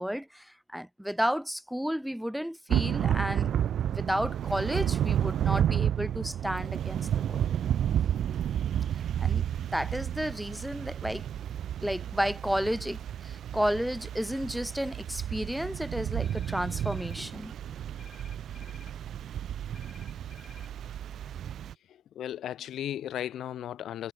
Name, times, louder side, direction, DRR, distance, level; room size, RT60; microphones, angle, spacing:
voice 1, 0.0-3.5 3.9-7.5 9.2-11.2 11.8-17.5, equal, ahead, 0.9 m, -32 dB
Thunder / Rain, 2.7-21.7, right 10 dB, 65° right, 0.4 m, -31 dB
sound 1, 16.2-17.2 18.0-19.0 19.7-20.7, left 4 dB, 30° left, 6.5 m, -54 dB
voice 2, 22.2-24.1, left 11 dB, 70° left, 1.9 m, -35 dB
cardioid pair, 90°, 0 cm